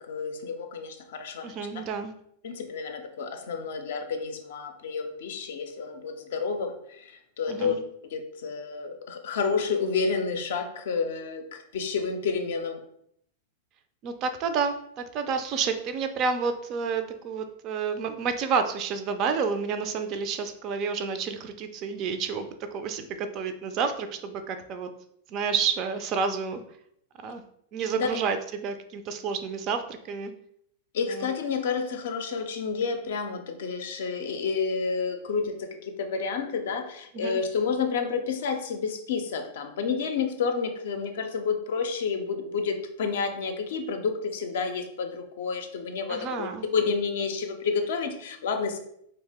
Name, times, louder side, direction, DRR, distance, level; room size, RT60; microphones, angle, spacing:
voice 1, 0.0-1.5 2.4-7.7 8.0-12.8 27.9-28.1 30.9-46.5 46.7-48.8, left 5 dB, 60° left, 5 dB, 0.4 m, -30 dB
voice 2, 1.4-2.1 7.5-7.8 14.0-24.9 25.3-26.6 27.2-27.4 27.7-30.3 31.1-31.3 37.1-37.4 46.1-46.7, right 5 dB, 40° right, 8 dB, 0.3 m, -30 dB
2.7 x 2.0 x 3.4 m, 0.72 s
figure-of-eight pair, 95°, 0 cm